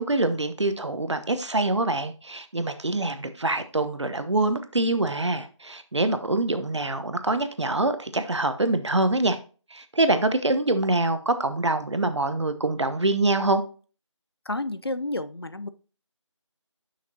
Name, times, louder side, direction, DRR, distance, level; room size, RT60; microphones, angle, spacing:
voice 1, 0.0-9.4 9.7-13.6, right 2 dB, 65° right, 0.9 m, -25 dB
voice 2, 14.5-15.7, left 2 dB, 50° left, 0.4 m, -30 dB
7.5 x 5.8 x 2.8 m
figure-of-eight pair, 180°, 16 cm